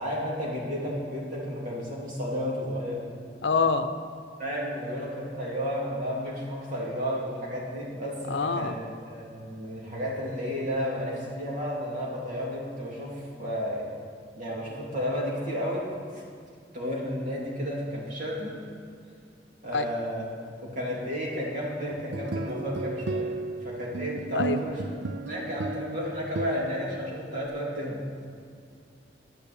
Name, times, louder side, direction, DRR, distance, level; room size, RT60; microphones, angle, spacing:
voice 1, 0.0-3.0 4.4-13.9 14.3-15.9 16.7-18.6 19.6-20.2 20.6-23.3 23.6-24.8 25.3-28.0, equal, 45° right, -5 dB, 3.0 m, -32 dB
voice 2, 3.4-3.9 8.3-8.7 19.7-19.8 24.3-24.6, left 4 dB, 80° left, 10 dB, 0.7 m, -25 dB
sound 1, 21.9-27.5, right 3 dB, 80° right, 0.5 m, -34 dB
11.0 x 7.0 x 8.4 m, 2.3 s
head